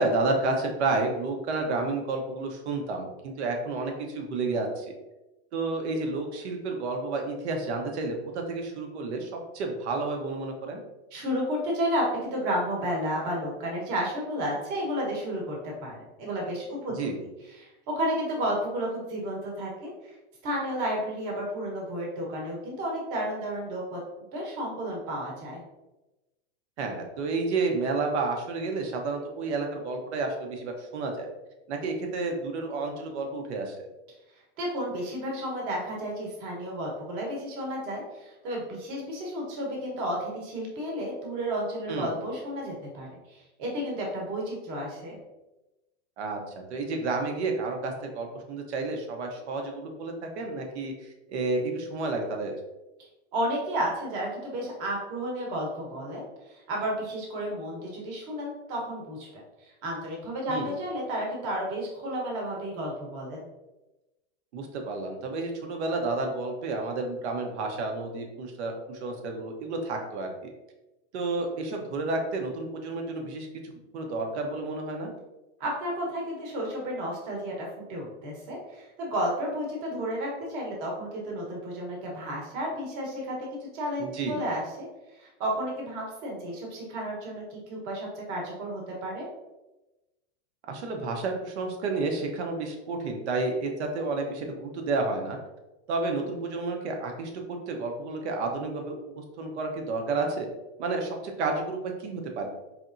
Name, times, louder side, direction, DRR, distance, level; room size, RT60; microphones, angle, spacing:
voice 1, 0.0-4.9 5.5-10.8 16.9-17.2 26.8-31.3 31.7-33.9 41.9-42.2 46.2-46.4 46.7-52.6 60.5-60.7 64.5-70.3 71.1-75.1 84.0-84.4 90.7-95.4 95.9-100.5 100.8-102.5, right 3 dB, 75° right, 3 dB, 0.9 m, -31 dB
voice 2, 11.1-16.9 17.6-20.1 20.4-24.0 24.3-25.6 34.6-45.2 53.3-63.5 75.6-83.5 83.7-84.9 85.1-89.3, equal, 35° right, -2 dB, 1.1 m, -32 dB
4.3 x 3.3 x 2.6 m, 1.0 s
supercardioid pair, 170°, 34 cm